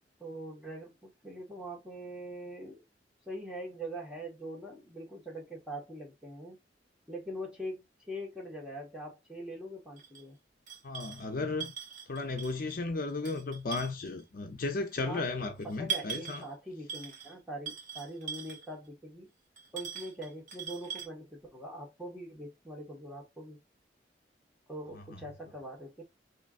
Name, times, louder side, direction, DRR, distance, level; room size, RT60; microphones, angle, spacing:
voice 1, 0.2-2.8 3.3-6.6 7.1-10.4 15.0-19.3 19.7-23.6 24.7-26.0, right 1 dB, 5° right, 1.6 m, -43 dB
sound 1, 10.0-10.2 10.7-11.3 11.6-12.7 13.1-14.2 14.9-15.0 15.6-16.5 16.9-17.3 17.7-18.7 19.6-21.1, right 7 dB, 45° right, 1.1 m, -40 dB
voice 2, 10.8-11.7 12.1-16.5 24.9-25.2, left 3 dB, 55° left, 0.6 m, -35 dB
4.5 x 3.1 x 2.5 m
head